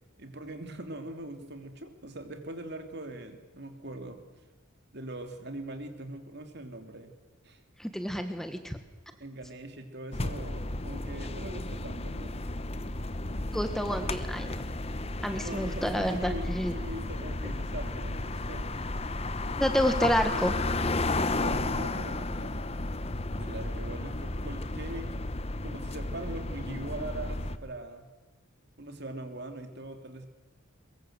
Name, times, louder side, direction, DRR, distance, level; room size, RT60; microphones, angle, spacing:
voice 1, 0.2-4.2 4.9-7.1 7.4-7.6 9.2-12.4 15.4-18.7 21.3-22.6 23.3-25.1 25.6-28.1 28.8-30.3, right 2 dB, 55° right, 6 dB, 2.9 m, -41 dB
voice 2, 7.8-8.8 13.5-14.5 15.2-16.8 19.6-20.5, equal, ahead, 7 dB, 1.5 m, -29 dB
sound 1, 10.1-27.6, left 2 dB, 30° left, 1.0 m, -33 dB
23.0 x 22.0 x 8.0 m, 1.2 s
head